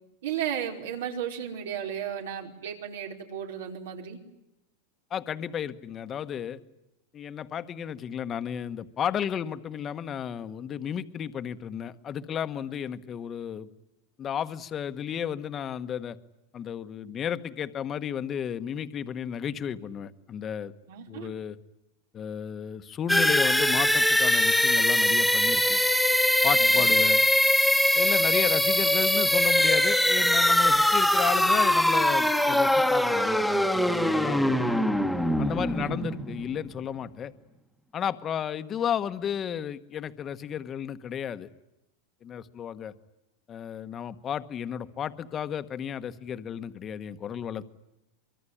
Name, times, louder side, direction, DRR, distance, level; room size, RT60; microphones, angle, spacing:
voice 1, 0.2-4.2 20.9-21.3 26.6-26.9 35.8-36.2, right 9 dB, 85° right, 3 dB, 4.9 m, -35 dB
voice 2, 5.1-6.6 7.1-13.7 14.2-16.2 16.5-20.7 21.1-21.6 22.1-25.8 26.4-27.2 27.9-34.8 35.4-37.3 37.9-41.5 42.2-42.9 43.5-47.6, left 8 dB, 25° left, 11 dB, 1.2 m, -33 dB
sound 1, 23.1-36.8, left 1 dB, ahead, 1.4 m, -22 dB
24.5 x 23.0 x 10.0 m, 0.92 s
supercardioid pair, 155°, 0 cm